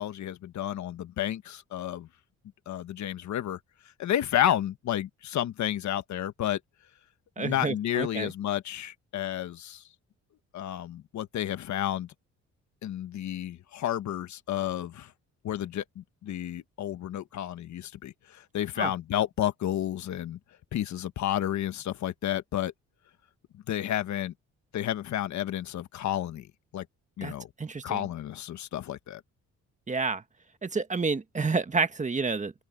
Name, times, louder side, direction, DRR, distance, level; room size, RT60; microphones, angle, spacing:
voice 1, 0.0-2.1 2.7-3.6 4.0-6.6 7.4-9.8 10.5-12.1 12.8-15.1 15.4-20.4 20.7-22.7 23.7-24.3 24.7-26.5 26.7-26.8 27.2-27.5 27.8-29.2, left 11 dB, 70° left, 1.3 m, -31 dB
voice 2, 7.4-8.3 18.8-18.9 27.2-27.3 27.6-28.1 29.9-30.2 30.6-32.5, right 4 dB, 25° right, 1.5 m, -29 dB
open air
cardioid pair, 90°, 30 cm